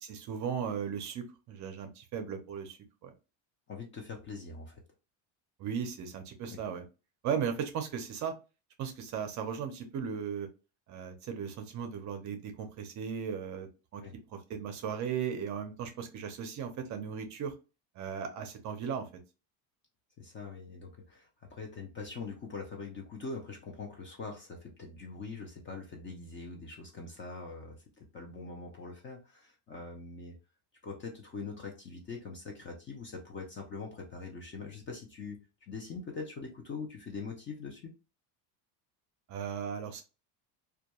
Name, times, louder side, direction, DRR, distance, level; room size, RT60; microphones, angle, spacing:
voice 1, 0.0-3.1 5.6-6.8 7.2-8.3 8.8-10.5 10.9-14.0 14.3-17.5 18.0-19.1 39.3-40.0, right 7 dB, 40° right, 7 dB, 0.5 m, -36 dB
voice 2, 3.7-4.8 6.5-6.6 14.0-14.1 20.2-30.4 30.8-37.9, left 4 dB, 25° left, 2 dB, 0.4 m, -43 dB
2.3 x 2.2 x 2.8 m, 0.30 s
cardioid pair, 135°, 46 cm